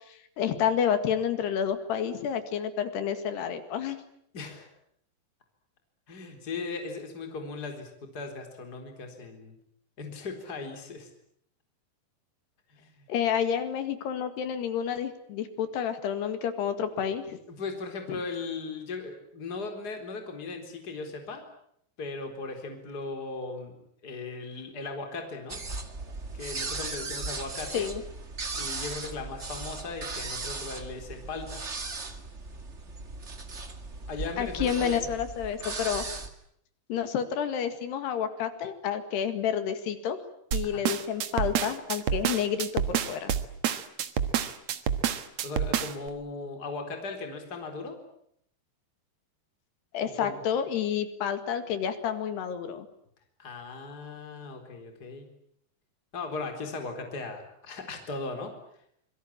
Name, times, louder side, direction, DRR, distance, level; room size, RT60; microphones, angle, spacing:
voice 1, 0.1-4.0 13.1-17.4 27.7-28.0 34.4-36.0 36.9-40.2 40.5-43.3 49.9-52.9, left 8 dB, 70° left, 9 dB, 4.0 m, -29 dB
voice 2, 4.3-4.7 6.1-9.6 10.0-11.1 12.7-13.1 17.5-21.4 22.0-23.7 24.0-25.6 26.3-27.9 28.5-31.6 34.1-35.1 40.6-40.8 45.4-48.0 50.2-50.4 53.4-55.3 56.1-58.5, left 3 dB, 25° left, 5 dB, 4.2 m, -38 dB
sound 1, 25.5-36.3, right 3 dB, 35° right, 1.1 m, -37 dB
sound 2, 40.5-46.1, right 9 dB, 60° right, 1.8 m, -28 dB
26.0 x 22.5 x 8.8 m, 0.70 s
omnidirectional pair, 5.0 m